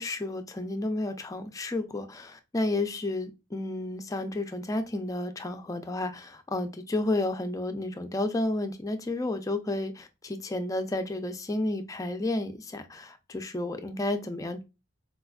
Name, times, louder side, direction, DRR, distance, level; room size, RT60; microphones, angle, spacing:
voice 1, 0.0-14.6, left 2 dB, 15° left, 0.4 m, -31 dB
4.1 x 2.4 x 2.2 m
head